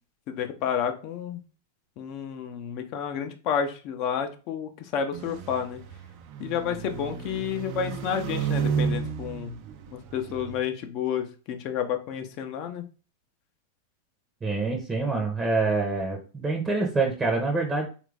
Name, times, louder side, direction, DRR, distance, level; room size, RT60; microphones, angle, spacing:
voice 1, 0.3-1.4 2.0-5.8 6.4-9.6 9.9-12.8, left 8 dB, 45° left, 6 dB, 0.5 m, -30 dB
Small car, 5.1-10.6, right 7 dB, 50° right, 0.4 m, -32 dB
voice 2, 14.4-17.9, right 3 dB, 15° right, 2 dB, 0.7 m, -26 dB
3.1 x 2.4 x 3.2 m, 0.35 s
hypercardioid pair, 125°, 0 cm